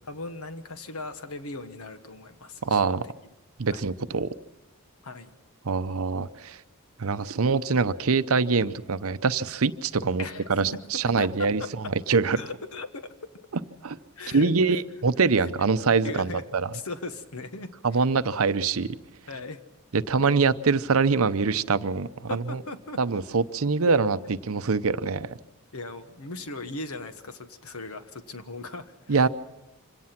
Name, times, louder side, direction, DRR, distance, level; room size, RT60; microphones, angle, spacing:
voice 1, 0.1-3.0 3.7-3.9 5.0-5.3 10.2-10.7 11.2-11.7 12.3-13.1 14.2-14.5 15.4-15.5 16.0-16.4 16.7-18.0 19.3-19.6 22.3-23.0 23.8-23.9 25.7-29.3, left 3 dB, 80° left, 1.4 m, -38 dB
voice 2, 2.6-3.0 3.6-4.3 5.6-6.6 7.0-10.2 10.5-11.6 12.1-12.4 13.8-14.0 14.3-16.7 17.8-19.0 19.9-22.6 23.0-24.2 24.4-25.3 29.1-29.3, right 4 dB, 75° right, 0.7 m, -24 dB
25.5 x 17.0 x 5.9 m
head